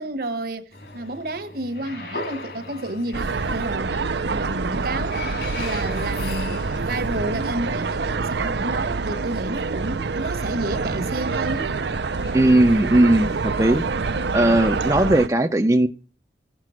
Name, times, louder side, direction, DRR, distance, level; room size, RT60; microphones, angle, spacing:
voice 1, 0.0-11.7, right 1 dB, 55° right, 1.2 m, -31 dB
sound 1, 0.7-14.9, left 2 dB, 60° left, 2.5 m, -39 dB
sound 2, 3.1-15.3, right 4 dB, 75° right, 0.6 m, -26 dB
voice 2, 12.3-13.8 14.3-15.9, right 1 dB, 20° right, 0.6 m, -18 dB
15.0 x 7.6 x 6.3 m
head